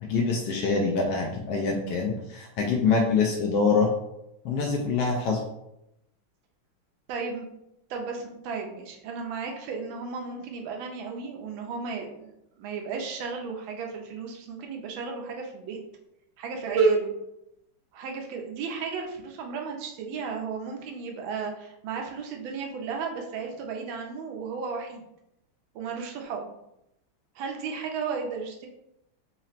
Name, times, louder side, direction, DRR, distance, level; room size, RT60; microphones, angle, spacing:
voice 1, 0.0-3.9 4.4-5.4, left 4 dB, 80° left, 0 dB, 0.9 m, -25 dB
voice 2, 7.1-7.5 7.9-15.8 16.4-17.1 17.9-25.0 25.7-26.5 27.4-28.7, right 5 dB, 75° right, 2 dB, 1.3 m, -33 dB
4.2 x 2.0 x 4.0 m, 0.83 s
omnidirectional pair, 2.4 m